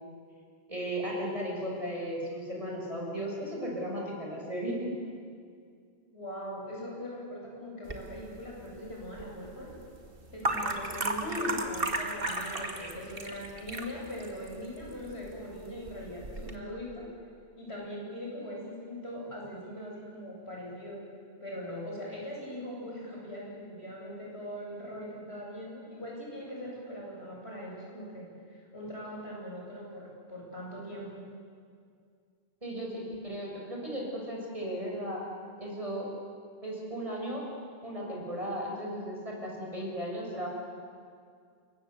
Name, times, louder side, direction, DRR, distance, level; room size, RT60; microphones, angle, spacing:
voice 1, 0.7-4.9 11.2-11.5 32.6-35.2 35.6-36.1 36.6-37.4 37.8-40.5, equal, 30° right, -2 dB, 6.8 m, -35 dB
voice 2, 6.1-9.7 10.3-17.1 17.6-21.0 21.4-28.2 28.5-31.2, equal, 75° left, -3 dB, 8.5 m, -41 dB
sound 1, 7.9-16.6, right 2 dB, 60° right, 2.3 m, -36 dB
27.5 x 23.0 x 8.2 m, 2.2 s
omnidirectional pair, 1.1 m